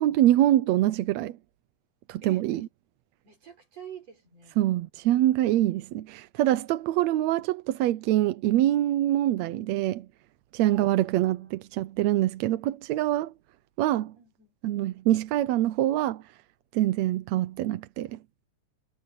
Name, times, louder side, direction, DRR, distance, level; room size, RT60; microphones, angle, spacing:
voice 1, 0.0-1.4 2.1-2.7 4.6-10.1 10.5-13.3 13.8-14.1 14.6-16.2 16.7-18.2, right 14 dB, 75° right, 1.8 m, -25 dB
voice 2, 2.2-2.7 3.2-4.6 10.7-11.6 14.2-14.5, right 8 dB, 55° right, 7.4 m, -48 dB
omnidirectional pair, 3.5 m